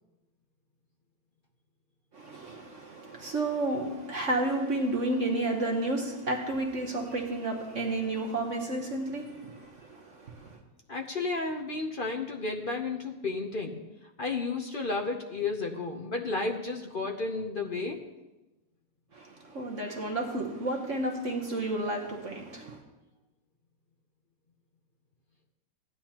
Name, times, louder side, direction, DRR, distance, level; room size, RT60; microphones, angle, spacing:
voice 1, 2.1-10.6 19.1-22.8, right 2 dB, 45° right, 1.2 m, -31 dB
voice 2, 10.9-13.8 14.2-18.0, left 3 dB, 50° left, 0.6 m, -32 dB
16.5 x 10.0 x 2.9 m
omnidirectional pair, 2.1 m